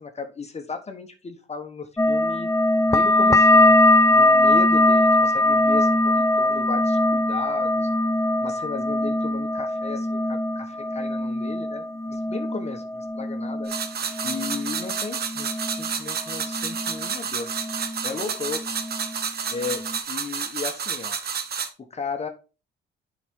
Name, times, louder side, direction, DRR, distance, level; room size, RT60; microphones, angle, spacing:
voice 1, 0.0-2.5 2.9-7.9 8.2-13.7 14.2-17.5 18.0-18.7 19.5-21.2 21.8-22.3, left 4 dB, 35° left, 5 dB, 1.2 m, -35 dB
sound 1, 2.0-17.1 17.4-18.2 18.5-19.2 19.6-20.0, left 1 dB, 15° left, 0.6 m, -21 dB
sound 2, 13.7-21.7, right 6 dB, 55° right, 1.1 m, -30 dB
8.1 x 5.1 x 3.6 m, 0.32 s
cardioid pair, 90°, 20 cm